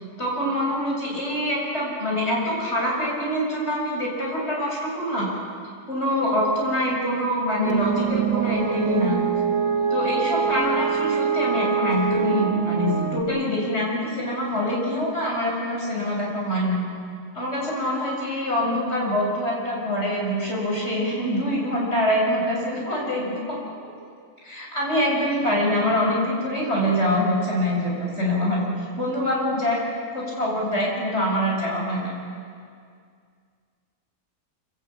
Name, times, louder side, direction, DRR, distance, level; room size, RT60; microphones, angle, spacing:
voice 1, 0.2-5.3 5.9-9.2 9.9-16.8 17.3-23.6 24.4-28.7 29.0-29.8 30.1-32.1, left 1 dB, 60° left, -3 dB, 7.0 m, -25 dB
sound 1, 7.6-13.2, right 6 dB, 85° right, 2.0 m, -24 dB
25.5 x 17.0 x 8.6 m, 2.2 s
omnidirectional pair, 1.3 m